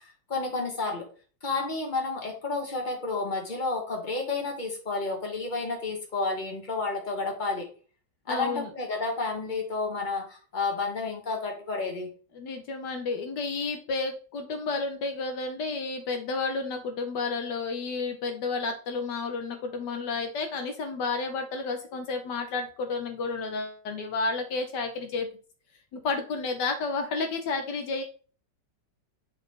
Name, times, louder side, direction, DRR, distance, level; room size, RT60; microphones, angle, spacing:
voice 1, 0.3-1.1 1.4-7.7 8.3-12.1, left 3 dB, 25° left, 1 dB, 1.8 m, -31 dB
voice 2, 8.3-8.7 12.3-25.3 25.9-28.0, left 4 dB, 75° left, 5 dB, 1.4 m, -31 dB
9.3 x 4.1 x 3.3 m, 0.40 s
omnidirectional pair, 1.9 m